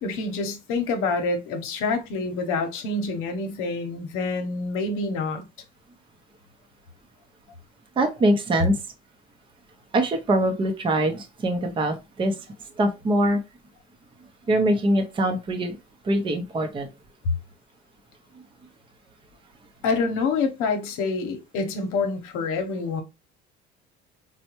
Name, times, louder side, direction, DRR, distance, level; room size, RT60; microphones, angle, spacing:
voice 1, 0.0-5.4 19.8-23.0, left 3 dB, 80° left, 0.9 m, -27 dB
voice 2, 8.0-8.8 9.9-12.3 12.8-13.4 14.5-15.8 16.0-16.9, right 1 dB, 25° right, 0.6 m, -23 dB
4.2 x 2.2 x 2.9 m
cardioid pair, 115°, 21 cm